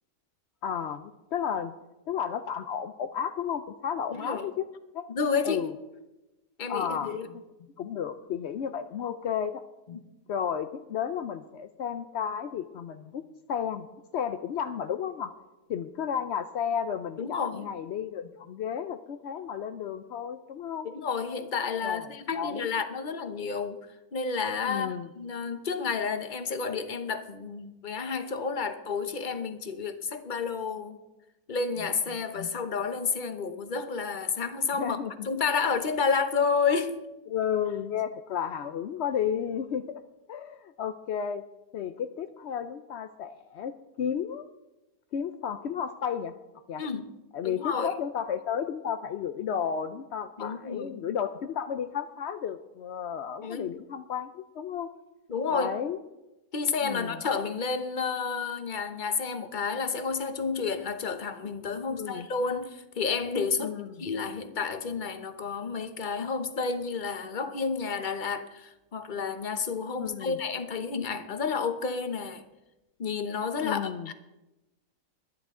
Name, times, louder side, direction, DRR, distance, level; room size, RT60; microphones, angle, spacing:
voice 1, 0.6-1.7 2.1-4.7 4.9-5.1 5.4-5.7 6.7-7.2 7.8-9.6 10.3-13.2 13.5-13.9 14.1-15.3 15.7-20.9 21.8-22.1 22.3-22.7 24.6-25.1 34.7-35.3 37.3-40.0 40.3-41.4 41.7-44.5 45.1-46.3 46.7-46.8 47.3-54.9 55.5-56.0 56.8-57.2 61.9-62.3 63.6-64.1 70.0-70.4 73.6-74.1, left 8 dB, 75° left, 9 dB, 0.6 m, -33 dB
voice 2, 4.1-4.5 5.1-5.7 6.6-7.3 9.9-10.0 17.2-17.7 20.8-23.8 24.1-31.0 31.5-35.0 35.2-37.0 46.8-47.0 47.4-47.9 50.4-51.1 53.4-53.7 55.3-55.7 56.5-72.4 73.0-74.1, left 5 dB, 35° left, 9 dB, 0.9 m, -30 dB
22.5 x 10.5 x 3.7 m, 1.0 s
omnidirectional pair, 1.8 m